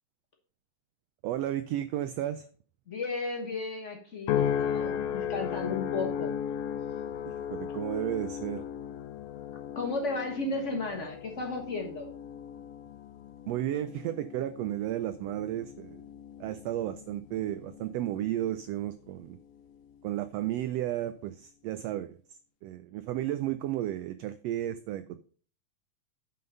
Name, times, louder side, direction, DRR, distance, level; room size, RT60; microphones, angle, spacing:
voice 1, 1.2-2.5 7.5-8.6 13.5-16.0 16.4-19.4 20.0-22.2 22.6-25.2, right 13 dB, 90° right, 12 dB, 1.4 m, -33 dB
voice 2, 2.9-6.4 9.7-12.1, left 3 dB, 60° left, 2 dB, 0.7 m, -34 dB
sound 1, 4.3-18.8 19.3-19.7, left 9 dB, 85° left, 2.0 m, -36 dB
9.5 x 5.7 x 5.3 m, 0.43 s
omnidirectional pair, 3.5 m